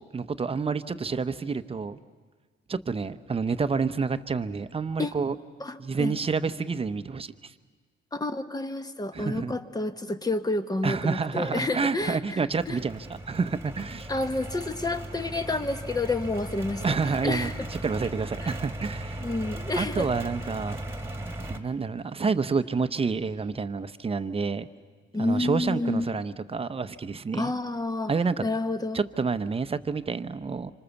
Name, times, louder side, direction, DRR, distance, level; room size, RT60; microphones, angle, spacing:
voice 1, 0.1-2.0 2.7-5.3 5.8-7.5 9.1-9.5 10.8-14.1 16.8-17.5 17.8-19.2 19.8-20.8 21.5-24.7 25.2-27.5 28.1-28.4 28.9-30.7, right 5 dB, 30° right, 11 dB, 0.9 m, -29 dB
voice 2, 5.6-6.2 8.1-12.8 14.1-17.5 18.4-18.5 19.2-20.1 25.1-26.1 27.3-28.1 28.4-29.0, left 2 dB, 20° left, 9 dB, 1.3 m, -29 dB
sound 1, 12.6-21.6, right 1 dB, 10° right, 1.9 m, -37 dB
26.5 x 25.5 x 7.1 m, 1.5 s
cardioid pair, 90°, 20 cm